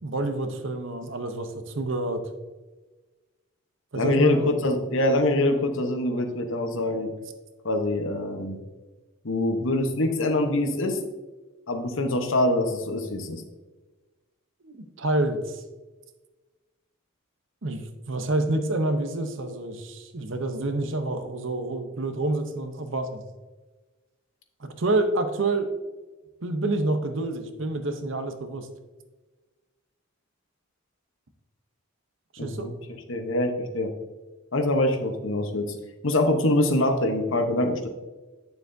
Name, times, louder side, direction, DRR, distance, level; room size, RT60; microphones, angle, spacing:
voice 1, 0.0-2.2 3.9-4.5 14.6-15.6 17.6-23.2 24.6-25.7 26.4-28.7 32.3-32.7, right 2 dB, 60° right, 8 dB, 0.8 m, -28 dB
voice 2, 3.9-7.1 7.6-8.6 9.2-11.0 11.7-13.4 32.4-32.7 33.1-33.9 34.5-35.7 36.0-37.9, left 1 dB, 65° left, 6 dB, 1.0 m, -24 dB
9.1 x 6.9 x 2.7 m, 1.2 s
head